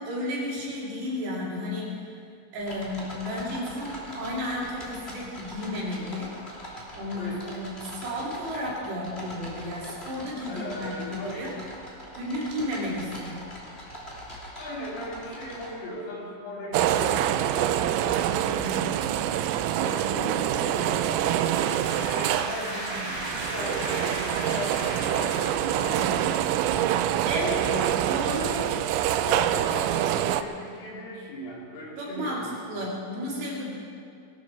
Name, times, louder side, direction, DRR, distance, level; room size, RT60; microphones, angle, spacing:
voice 1, 0.0-2.1 2.5-6.4 6.9-11.5 12.1-13.5 27.3-27.6 28.1-28.6 32.0-33.8, left 1 dB, 60° right, -5 dB, 4.9 m, -32 dB
sound 1, 2.6-15.7, equal, 20° left, 1.8 m, -42 dB
voice 2, 7.2-7.6 10.5-11.4 14.6-19.2 19.8-21.3 21.9-26.4 27.6-28.0 28.3-28.5 29.2-32.6, left 1 dB, 75° left, -4 dB, 5.6 m, -37 dB
sound 2, 16.7-30.4, right 11 dB, 85° right, 3.2 m, -26 dB
sound 3, 21.4-26.2, right 1 dB, 30° right, 4.2 m, -36 dB
21.5 x 12.5 x 4.7 m, 2.3 s
omnidirectional pair, 5.8 m